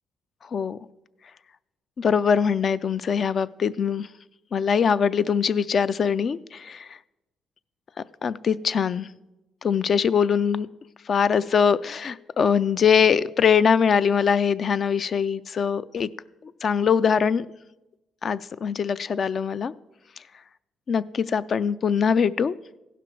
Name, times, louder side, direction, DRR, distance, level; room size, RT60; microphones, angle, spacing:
voice 1, 2.0-4.1 4.5-6.9 8.2-9.1 9.6-10.7 11.1-16.1 16.4-17.5 18.2-19.7 20.9-22.5, left 7 dB, 50° left, 16 dB, 0.3 m, -22 dB
15.5 x 5.9 x 4.6 m, 1.0 s
cardioid pair, 90°, 0 cm